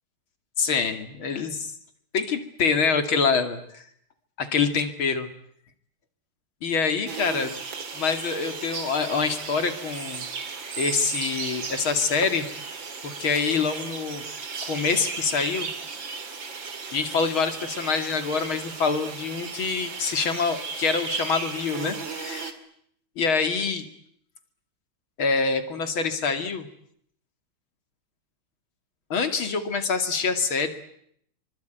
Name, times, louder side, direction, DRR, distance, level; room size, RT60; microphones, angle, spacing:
voice 1, 0.6-1.7 2.1-3.8 4.4-5.3 6.6-7.5 7.9-10.3 10.8-12.5 13.0-14.2 14.6-15.7 16.9-22.5 23.2-23.9 25.2-26.7 29.1-30.7, left 5 dB, 70° left, 8 dB, 3.3 m, -25 dB
sound 1, 7.1-22.5, right 5 dB, 60° right, 3.2 m, -35 dB
25.5 x 24.5 x 9.3 m, 0.69 s
omnidirectional pair, 2.3 m